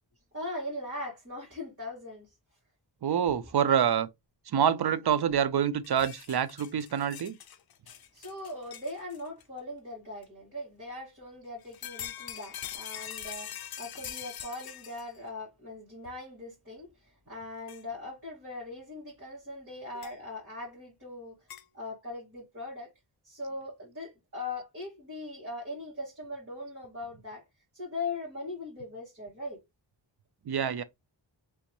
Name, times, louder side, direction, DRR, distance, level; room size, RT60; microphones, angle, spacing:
voice 1, 0.3-2.3 7.8-21.5 21.7-22.9 23.2-27.4 27.7-29.6, left 2 dB, 30° right, 2.3 m, -40 dB
voice 2, 3.0-4.1 4.5-7.4 30.5-30.8, right 8 dB, 60° right, 0.5 m, -26 dB
sound 1, 5.8-9.4 10.2-10.3 11.6-15.2 16.1-16.2 17.7-17.8 20.0-20.1 21.5-21.6, left 10 dB, 55° left, 0.5 m, -43 dB
3.4 x 3.0 x 3.0 m
wide cardioid pair, 70°, 46 cm